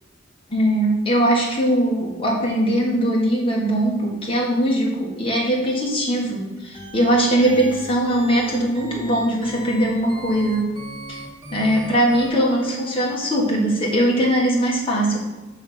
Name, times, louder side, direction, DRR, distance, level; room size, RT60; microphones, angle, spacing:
voice 1, 0.5-10.7 11.1-11.2 11.5-15.2, right 1 dB, 30° left, -3 dB, 1.4 m, -20 dB
sound 1, 6.6-12.3, equal, 25° right, 1.5 m, -37 dB
6.2 x 3.4 x 5.9 m, 1.1 s
head